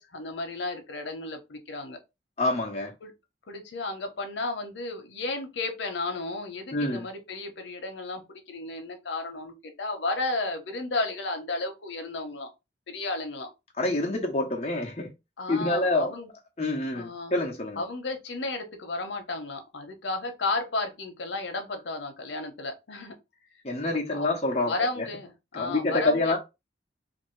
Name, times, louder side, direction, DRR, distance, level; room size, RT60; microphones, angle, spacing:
voice 1, 0.0-2.0 3.0-3.1 3.5-12.5 12.9-13.5 15.4-16.3 16.9-17.3 17.8-23.1 24.1-24.3 24.6-26.4, left 2 dB, 85° left, 0.7 m, -33 dB
voice 2, 2.4-2.9 6.7-7.1 13.8-15.1 15.5-16.1 16.6-17.8 23.6-24.7 25.5-26.4, left 2 dB, 35° left, 0.6 m, -27 dB
2.6 x 2.6 x 3.1 m
head